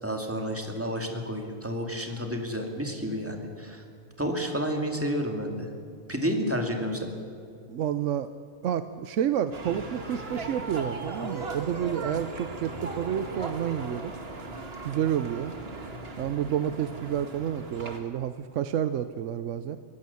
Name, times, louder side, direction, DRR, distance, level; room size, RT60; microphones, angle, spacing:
voice 1, 0.0-3.8 4.2-5.7 6.1-7.1, equal, 10° right, 3 dB, 2.4 m, -30 dB
voice 2, 7.7-8.3 8.6-14.1 14.8-15.5 16.2-19.8, right 9 dB, 70° right, 11 dB, 1.0 m, -29 dB
sound 1, 9.5-18.0, right 3 dB, 50° right, 2.1 m, -38 dB
23.0 x 17.0 x 7.1 m, 2.5 s
omnidirectional pair, 1.4 m